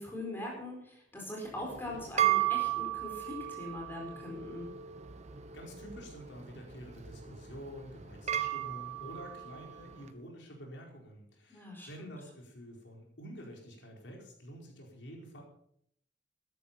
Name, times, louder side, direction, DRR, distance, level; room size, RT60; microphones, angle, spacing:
voice 1, 0.0-4.7 11.5-12.1, left 1 dB, 10° left, -1 dB, 4.6 m, -41 dB
sound 1, 1.6-10.1, right 12 dB, 40° right, 1.1 m, -35 dB
voice 2, 5.5-15.4, equal, 75° left, 0 dB, 4.7 m, -48 dB
13.5 x 12.0 x 5.7 m, 0.68 s
head